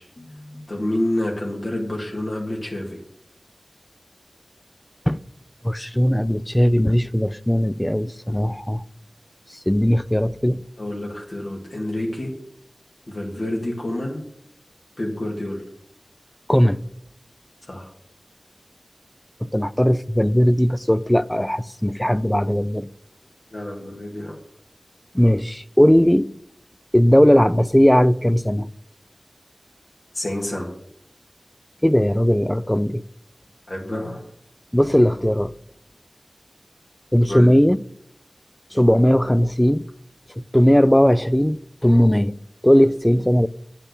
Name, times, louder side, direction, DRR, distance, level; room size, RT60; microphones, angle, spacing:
voice 1, 0.0-3.0 10.8-12.3 13.1-14.2 15.0-15.6 17.7-17.9 23.5-24.4 30.1-30.7 33.7-34.2 37.3-37.5, left 1 dB, 60° left, 2.0 m, -28 dB
voice 2, 5.6-8.8 9.7-10.6 16.5-16.8 19.4-22.9 25.1-26.3 26.9-28.7 31.8-33.0 34.7-35.5 37.1-37.8 38.7-39.8 40.4-43.5, equal, 10° left, 0.3 m, -18 dB
8.4 x 5.7 x 6.8 m
wide cardioid pair, 50°, 0 cm